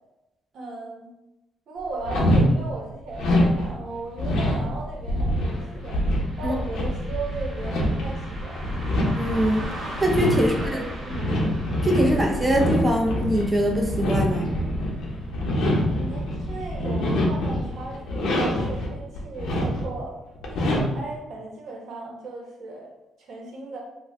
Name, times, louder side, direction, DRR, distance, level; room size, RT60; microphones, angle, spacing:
voice 1, 0.5-1.1 1.7-6.0 6.4-8.6 10.3-11.2 16.0-20.2 20.4-22.9 23.2-23.8, right 3 dB, 70° right, -2 dB, 1.0 m, -36 dB
sound 1, 2.0-2.4 3.1-18.9 19.1-20.0 20.3-21.1, left 1 dB, 80° left, 0.8 m, -25 dB
Car passing by, 5.3-16.1 16.4-16.5 17.4-17.6 18.1-18.2 18.7-18.8, right 1 dB, 50° right, 1.3 m, -42 dB
voice 2, 9.2-10.8 11.8-14.4, equal, 15° right, 1 dB, 0.7 m, -23 dB
3.0 x 2.2 x 3.5 m, 0.97 s
cardioid pair, 90°, 0 cm